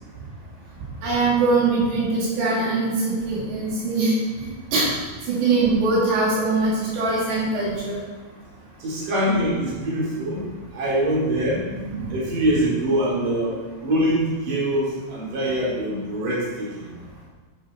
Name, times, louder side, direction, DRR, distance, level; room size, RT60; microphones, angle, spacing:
voice 1, 1.0-4.1 4.7-4.9 5.3-8.0 11.7-12.1, right 3 dB, 85° right, -6 dB, 4.7 m, -22 dB
voice 2, 8.8-10.4 10.7-11.6 12.1-16.9, right 1 dB, 50° right, -7 dB, 5.1 m, -24 dB
11.0 x 8.5 x 4.6 m, 1.3 s
omnidirectional pair, 4.9 m